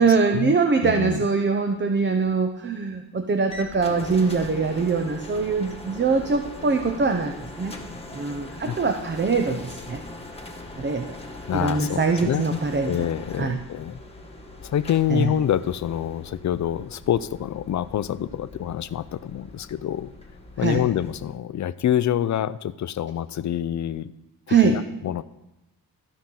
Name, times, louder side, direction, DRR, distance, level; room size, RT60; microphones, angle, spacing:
voice 1, 0.0-7.7 8.1-10.0 10.8-11.1 11.5-12.9 13.4-13.6 15.1-15.3 20.6-20.8 24.5-24.8, right 4 dB, 30° right, 5 dB, 0.7 m, -23 dB
voice 2, 0.8-1.3 8.2-8.3 8.7-8.8 11.5-14.0 14.6-20.1 20.6-24.1 24.5-25.2, left 10 dB, 50° left, 15 dB, 0.5 m, -26 dB
sound 1, 3.5-21.4, left 2 dB, 15° left, 1.4 m, -41 dB
14.5 x 5.8 x 3.8 m, 0.93 s
cardioid pair, 95°, 37 cm